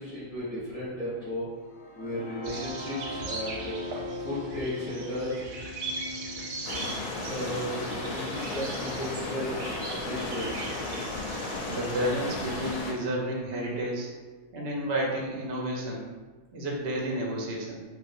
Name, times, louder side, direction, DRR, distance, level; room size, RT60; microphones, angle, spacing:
voice 1, 0.0-1.4 1.9-3.7 4.2-5.4 7.3-10.7, left 1 dB, 30° left, -10 dB, 0.8 m, -35 dB
sound 1, 1.6-9.5, left 2 dB, 90° left, 1.1 m, -41 dB
sound 2, 2.4-12.8, right 3 dB, 90° right, 1.1 m, -40 dB
sound 3, 6.6-12.9, left 3 dB, 70° left, 0.9 m, -34 dB
voice 2, 11.7-14.1 14.5-16.1 16.5-17.8, right 1 dB, 55° right, -2 dB, 0.7 m, -31 dB
3.5 x 2.4 x 2.5 m, 1.3 s
omnidirectional pair, 1.6 m